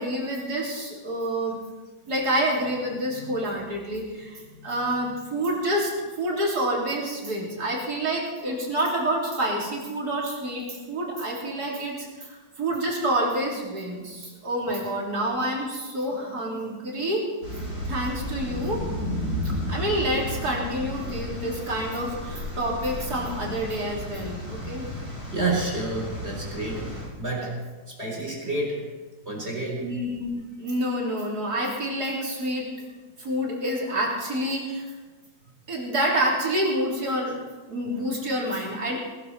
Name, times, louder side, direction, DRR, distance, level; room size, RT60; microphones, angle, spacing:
voice 1, 0.0-1.6 2.1-5.9 6.2-17.3 17.9-18.8 19.7-24.8 29.8-32.7 33.2-34.9 35.7-37.4 37.7-39.0, right 1 dB, 55° right, -3 dB, 3.9 m, -28 dB
sound 1, 17.4-27.0, left 1 dB, 90° left, 7.0 m, -33 dB
voice 2, 25.3-26.9 27.2-27.6 27.9-28.8 29.3-29.9, right 2 dB, 35° right, -2 dB, 4.1 m, -29 dB
20.0 x 13.5 x 4.3 m, 1.3 s
omnidirectional pair, 1.9 m